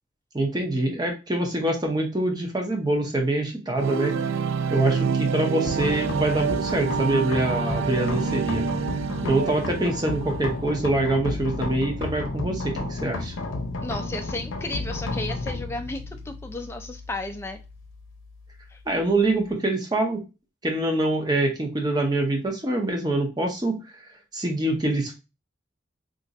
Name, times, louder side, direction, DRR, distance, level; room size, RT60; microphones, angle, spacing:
voice 1, 0.3-4.2 4.7-8.6 9.2-13.3 18.9-20.2 20.6-23.8 24.3-25.1, right 2 dB, 20° right, 3 dB, 0.7 m, -25 dB
sound 1, 3.8-10.7, right 5 dB, 85° right, 0.3 m, -27 dB
sound 2, 5.6-19.5, left 2 dB, 85° left, 0.6 m, -33 dB
voice 2, 13.8-17.6 18.7-18.8, left 2 dB, 15° left, 5 dB, 0.4 m, -33 dB
2.5 x 2.4 x 4.0 m, 0.28 s
head